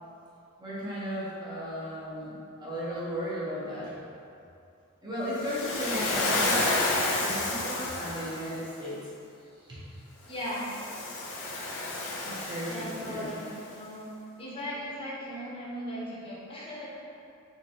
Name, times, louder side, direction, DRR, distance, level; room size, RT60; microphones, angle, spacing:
voice 1, 0.6-2.3 2.6-3.9 5.0-6.8 7.1-9.0 9.7-9.8 12.5-13.3, equal, 20° right, -9 dB, 0.9 m, -35 dB
Waves surf, 5.4-8.6 10.4-13.5, left 2 dB, 60° left, 0.6 m, -31 dB
voice 2, 5.8-6.3 10.2-10.7 12.7-13.4 13.7-14.1 14.4-16.9, left 1 dB, 25° left, -7 dB, 0.8 m, -37 dB
4.0 x 3.1 x 2.8 m, 2.6 s
head